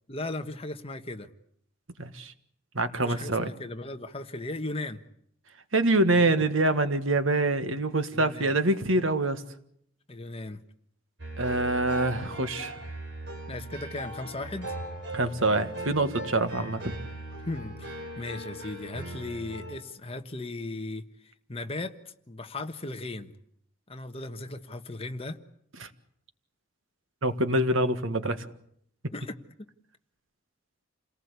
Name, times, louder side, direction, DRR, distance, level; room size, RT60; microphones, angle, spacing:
voice 1, 0.1-1.3 2.9-5.0 6.1-6.3 8.1-8.5 10.1-10.6 13.5-14.7 17.4-23.3 23.9-25.4 29.1-29.7, left 2 dB, 30° left, 7 dB, 1.3 m, -37 dB
voice 2, 2.0-2.3 2.7-3.5 5.7-9.4 11.4-12.8 15.1-16.9 25.8-25.9 27.2-28.5, right 2 dB, 90° right, 10 dB, 1.7 m, -25 dB
sound 1, 11.2-19.8, right 1 dB, 60° right, 5.2 m, -39 dB
28.5 x 18.5 x 8.3 m, 0.70 s
head